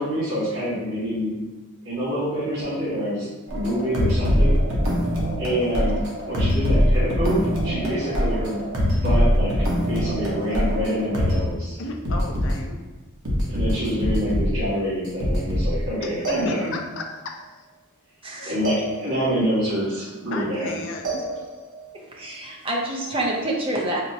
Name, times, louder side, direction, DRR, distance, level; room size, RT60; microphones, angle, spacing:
voice 1, 0.0-1.3 1.8-4.6 5.4-6.0 6.3-9.5 9.8-11.8 13.5-16.8 18.4-20.8, equal, 65° right, -13 dB, 1.4 m, -26 dB
sound 1, 3.5-11.5 12.0-12.5 13.2-14.7 15.1-15.9 16.2-17.1 18.6-19.5 21.0-21.9, equal, 80° right, 0.8 m, -23 dB
voice 2, 11.8-12.8 16.0-16.1 16.5-16.6 17.0-17.7 18.3-18.6 20.3-21.4, left 2 dB, 65° left, 3 dB, 0.5 m, -34 dB
voice 3, 18.2-18.5 21.9-24.0, right 1 dB, 25° right, -2 dB, 0.6 m, -27 dB
4.3 x 2.1 x 2.7 m, 1.1 s
head